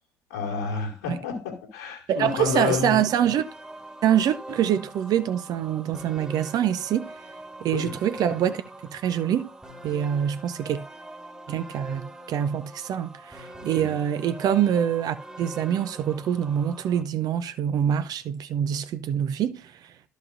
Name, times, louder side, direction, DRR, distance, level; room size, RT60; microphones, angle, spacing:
voice 1, 0.3-3.0 7.7-7.9 13.8-14.0, left 5 dB, 70° left, 2.3 m, -29 dB
voice 2, 2.1-3.5 4.0-7.1 7.6-8.6 8.9-9.5 9.8-10.8 11.5-19.9, right 9 dB, 50° right, 0.7 m, -25 dB
sound 1, 2.2-17.0, right 1 dB, 10° right, 1.6 m, -43 dB
13.0 x 5.2 x 2.6 m
figure-of-eight pair, 50°, 9 cm